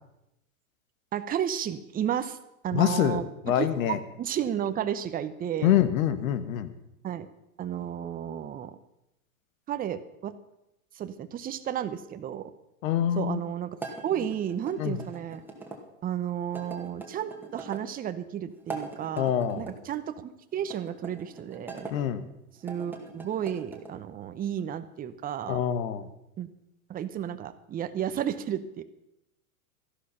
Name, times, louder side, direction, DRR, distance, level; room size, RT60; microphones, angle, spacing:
voice 1, 1.1-2.4 2.6-3.7 4.2-5.8 7.0-7.3 7.6-8.8 9.7-10.3 10.9-12.5 13.1-13.7 14.0-15.4 16.0-21.9 22.6-25.6 26.4-26.5 26.9-28.8, right 9 dB, 20° right, 11 dB, 0.8 m, -32 dB
voice 2, 2.7-4.0 5.6-6.7 12.8-13.4 14.8-15.0 19.2-19.7 21.9-22.2 25.5-26.1, left 10 dB, 65° left, 12 dB, 1.5 m, -26 dB
sound 1, 13.8-15.8 16.5-17.8 18.6-19.8 20.6-21.9 22.5-23.9, right 3 dB, 5° right, 2.0 m, -42 dB
13.5 x 11.5 x 5.7 m, 0.86 s
hypercardioid pair, 115°, 44 cm